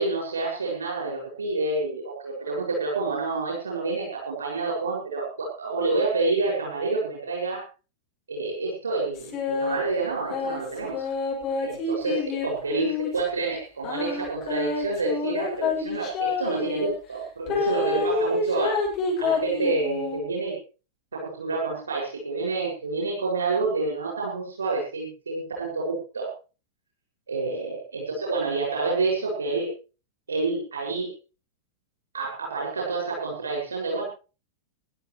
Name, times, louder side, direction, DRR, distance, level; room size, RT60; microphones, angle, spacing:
voice 1, 0.0-7.6 8.3-11.0 11.6-12.2 12.4-18.8 19.2-20.6 21.1-26.3 27.3-29.7 30.3-31.1 32.1-34.0, right 3 dB, 70° right, -1 dB, 7.0 m, -28 dB
sound 1, 9.1-9.8 10.3-13.2 13.8-16.9 17.5-20.2, left 4 dB, 40° left, 7.7 m, -28 dB
23.5 x 12.0 x 3.4 m, 0.34 s
figure-of-eight pair, 90°, 0 cm